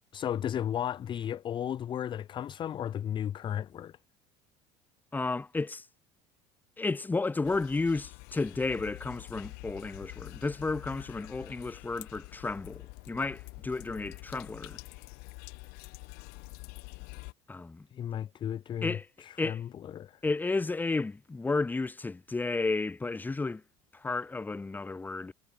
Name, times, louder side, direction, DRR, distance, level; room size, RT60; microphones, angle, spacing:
voice 1, 0.1-4.0 17.9-20.2, left 10 dB, 30° left, 0.5 m, -34 dB
voice 2, 5.1-5.8 6.8-14.8 17.5-17.9 18.8-19.1 19.4-19.6 20.2-23.6 23.9-25.3, left 3 dB, 10° left, 0.9 m, -32 dB
sound 1, 7.4-17.3, left 29 dB, 75° left, 1.0 m, -47 dB
cardioid pair, 130°, 16 cm